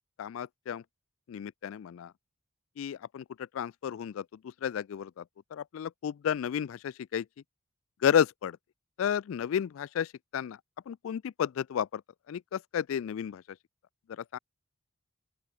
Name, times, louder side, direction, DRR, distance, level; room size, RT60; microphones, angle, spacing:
voice 1, 0.2-0.8 1.3-2.1 2.8-3.2 3.5-5.2 5.5-7.2 8.0-8.6 9.0-10.6 10.9-12.0 12.3-13.4 14.1-14.4, left 8 dB, 70° left, 0.3 m, -32 dB
open air
head